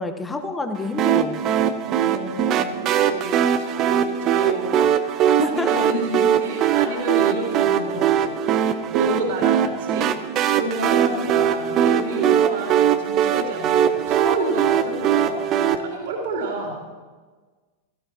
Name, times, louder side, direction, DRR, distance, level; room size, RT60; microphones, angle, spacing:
voice 1, 0.0-1.5 5.3-5.9, left 2 dB, 10° left, 7 dB, 1.1 m, -28 dB
sound 1, 1.0-15.8, right 9 dB, 35° right, 0.7 m, -21 dB
voice 2, 1.9-10.1 10.5-16.8, right 2 dB, 55° right, -1 dB, 3.2 m, -30 dB
17.0 x 15.0 x 2.9 m, 1.4 s
figure-of-eight pair, 90°, 0 cm